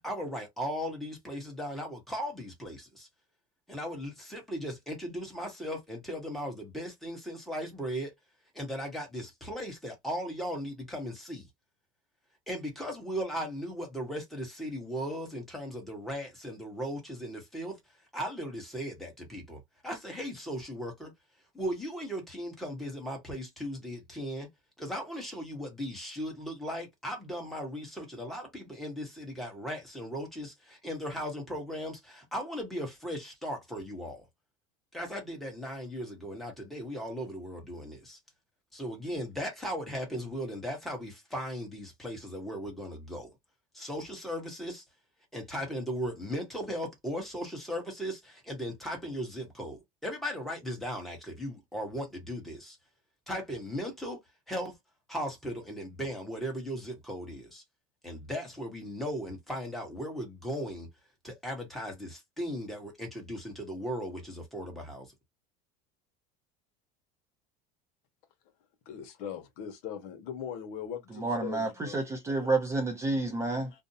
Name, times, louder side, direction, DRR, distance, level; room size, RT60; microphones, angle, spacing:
voice 1, 0.0-3.1 3.7-8.1 8.5-11.5 12.5-17.8 18.1-21.1 21.5-24.5 24.8-34.2 34.9-38.2 38.7-43.3 43.7-44.8 45.3-52.8 53.3-54.2 54.5-54.8 55.1-57.6 58.0-60.9 61.2-65.1, equal, ahead, 1.0 m, -37 dB
voice 2, 68.9-72.0 73.5-73.6, left 8 dB, 60° left, 0.9 m, -40 dB
voice 3, 71.1-73.7, right 2 dB, 15° right, 0.6 m, -30 dB
2.6 x 2.1 x 2.6 m
cardioid pair, 155°, 20 cm